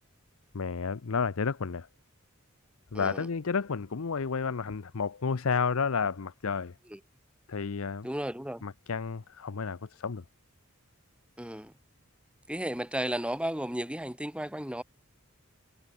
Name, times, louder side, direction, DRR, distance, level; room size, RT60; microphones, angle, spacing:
voice 1, 0.5-1.9 2.9-6.7 7.5-8.1 8.6-10.2, left 5 dB, 85° left, 0.7 m, -31 dB
voice 2, 2.9-3.3 6.9-7.0 8.0-8.7 11.4-11.7 12.5-14.8, right 1 dB, 5° right, 2.6 m, -34 dB
head